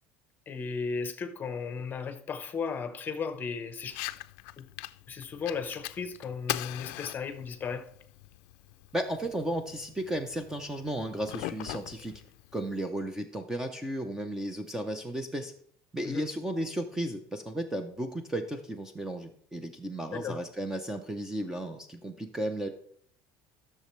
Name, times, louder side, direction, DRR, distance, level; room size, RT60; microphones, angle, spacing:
voice 1, 0.5-4.0 4.6-4.7 5.1-7.9 16.0-16.2 20.1-20.4, left 5 dB, 25° left, 0.8 m, -35 dB
Fire, 3.8-12.8, left 18 dB, 80° left, 0.4 m, -42 dB
voice 2, 8.9-12.2 12.5-15.5 15.9-22.7, right 1 dB, 5° right, 0.5 m, -34 dB
13.5 x 6.6 x 3.1 m
cardioid pair, 160°, 7 cm